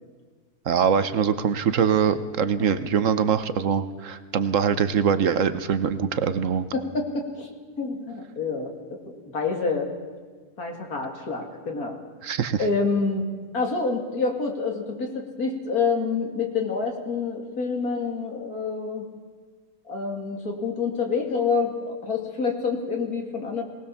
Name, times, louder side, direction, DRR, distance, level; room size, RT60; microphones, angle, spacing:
voice 1, 0.6-6.7 12.2-12.6, right 7 dB, 55° right, 12 dB, 1.1 m, -23 dB
voice 2, 6.7-7.5 7.8-9.9 10.6-12.0 12.6-13.3 13.5-19.0 19.9-23.6, left 4 dB, 65° left, 2 dB, 2.9 m, -27 dB
21.5 x 18.5 x 7.0 m, 1.5 s
omnidirectional pair, 1.7 m